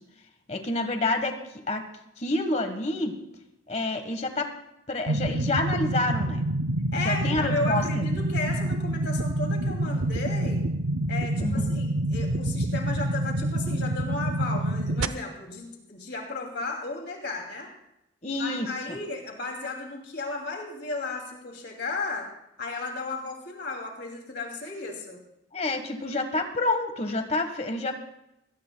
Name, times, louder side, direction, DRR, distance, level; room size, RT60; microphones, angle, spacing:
voice 1, 0.5-1.4 1.7-1.8 2.2-3.1 3.7-4.5 4.9-6.4 7.0-8.0 11.4-11.7 18.2-19.0 25.5-27.9, left 2 dB, 35° left, 7 dB, 1.4 m, -28 dB
sound 1, 5.1-15.1, right 1 dB, 85° right, 0.6 m, -27 dB
voice 2, 6.9-10.6 11.1-17.7 18.3-22.3 22.6-25.2, left 3 dB, 55° left, 1 dB, 2.7 m, -34 dB
21.0 x 18.0 x 2.3 m, 0.85 s
head